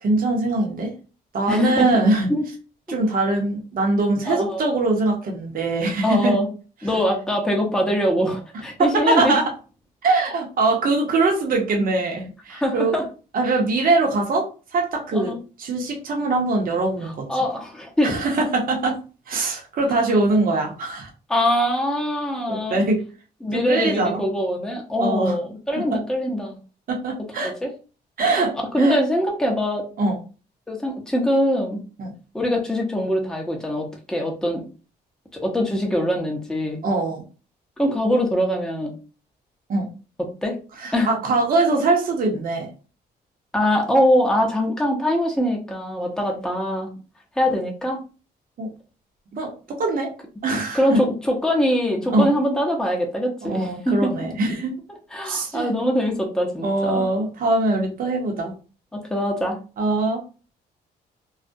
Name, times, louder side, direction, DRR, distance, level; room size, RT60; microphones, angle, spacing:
voice 1, 0.0-0.9 1.3-2.3 2.9-6.4 8.8-9.5 10.0-13.0 13.3-15.3 15.6-17.3 18.0-19.0 19.3-21.1 22.5-23.0 23.5-24.2 25.0-25.4 25.8-26.0 26.9-27.5 28.2-29.0 30.0-30.2 32.0-32.1 36.8-37.2 39.7-39.9 40.8-42.7 48.6-48.7 49.3-50.1 50.4-51.0 52.1-52.3 53.4-54.7 55.2-55.7 56.6-58.5 59.8-60.2, right 2 dB, 50° right, 1 dB, 0.8 m, -22 dB
voice 2, 1.5-2.0 2.3-2.5 2.9-3.0 4.3-4.6 6.0-6.5 6.8-9.4 12.5-13.0 15.1-15.4 17.3-18.1 21.3-22.8 23.4-26.6 27.4-27.7 28.7-29.8 30.7-31.8 32.3-34.6 35.3-36.8 37.8-38.9 40.2-40.6 40.9-41.1 43.5-46.9 47.4-48.0 50.7-54.1 55.1-57.0 58.9-59.6, equal, 5° left, 0 dB, 0.7 m, -23 dB
2.3 x 2.0 x 2.6 m, 0.35 s
supercardioid pair, 65°, 18 cm